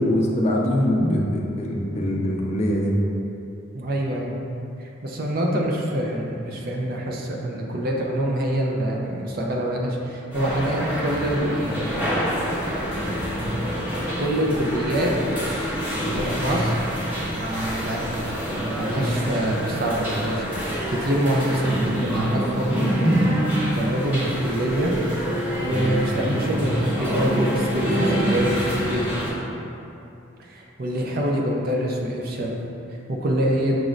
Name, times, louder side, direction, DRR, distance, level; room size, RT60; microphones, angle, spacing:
voice 1, 0.0-2.9, left 1 dB, 35° left, -1 dB, 0.4 m, -22 dB
voice 2, 3.7-4.3 4.8-12.2 14.2-15.1 15.9-16.8 17.4-23.3 23.8-24.9 25.6-29.1 30.4-32.6 33.1-33.8, right 1 dB, 50° right, -1 dB, 0.5 m, -25 dB
sound 1, 10.3-29.3, equal, 10° right, 0.9 m, -26 dB
6.1 x 2.5 x 3.1 m, 2.8 s
head